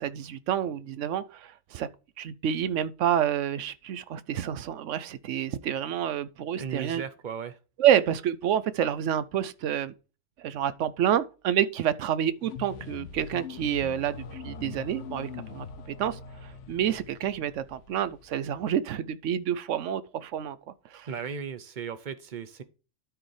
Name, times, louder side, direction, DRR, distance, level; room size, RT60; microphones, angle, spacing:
voice 1, 0.0-1.9 2.2-7.0 7.8-9.9 10.4-15.7 16.0-20.6 20.9-21.1, right 10 dB, 75° right, 1.0 m, -28 dB
voice 2, 6.6-7.6 21.1-22.6, right 7 dB, 45° right, 0.8 m, -36 dB
sound 1, 12.4-19.0, left 6 dB, 75° left, 1.1 m, -43 dB
12.5 x 4.8 x 3.3 m
omnidirectional pair, 1.3 m